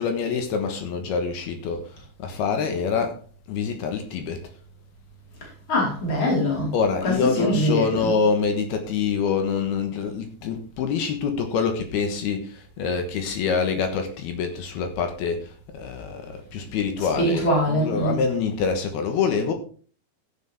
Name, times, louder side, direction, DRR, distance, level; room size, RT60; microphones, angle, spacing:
voice 1, 0.0-3.2 3.5-4.4 6.7-19.5, left 5 dB, 70° left, 2.9 m, -26 dB
voice 2, 5.4-6.7 7.0-8.1 17.0-18.2, equal, 30° left, 5.0 m, -23 dB
14.5 x 8.3 x 3.6 m
omnidirectional pair, 5.3 m